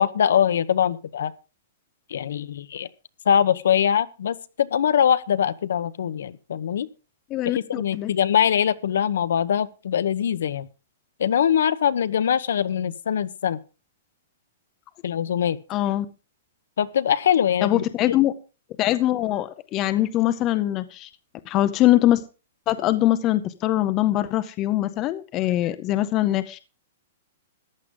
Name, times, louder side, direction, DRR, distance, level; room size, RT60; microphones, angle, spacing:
voice 1, 0.0-1.3 2.1-2.9 3.3-6.9 7.4-10.7 11.2-13.6 15.0-15.6 16.8-18.1, left 8 dB, 70° left, 14 dB, 1.0 m, -22 dB
voice 2, 7.3-8.1 15.7-16.1 17.6-18.3 18.8-21.1 21.5-22.2 22.7-26.6, left 14 dB, 20° left, 12 dB, 0.6 m, -22 dB
14.5 x 11.0 x 3.8 m, 0.32 s
hypercardioid pair, 175°, 0 cm